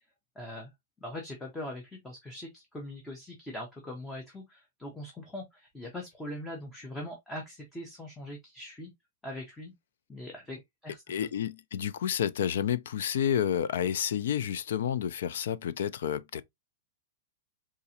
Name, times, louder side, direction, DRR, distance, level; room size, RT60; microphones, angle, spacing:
voice 1, 0.4-0.7 1.0-8.9 9.2-9.7 10.1-11.3, left 1 dB, 5° left, 0.6 m, -41 dB
voice 2, 11.1-16.4, left 9 dB, 70° left, 0.3 m, -30 dB
3.9 x 2.4 x 2.7 m
supercardioid pair, 170°, 0 cm